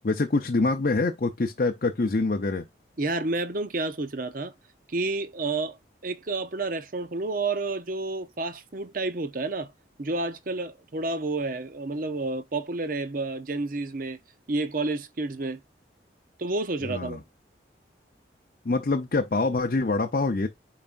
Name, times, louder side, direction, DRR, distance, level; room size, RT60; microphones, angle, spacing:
voice 1, 0.0-2.6 16.9-17.2 18.6-20.5, left 3 dB, 50° left, 0.6 m, -25 dB
voice 2, 3.0-4.5 4.9-5.8 6.0-9.7 10.0-14.2 14.5-15.6 16.4-17.2, right 3 dB, 50° right, 0.8 m, -30 dB
8.9 x 4.9 x 2.5 m
head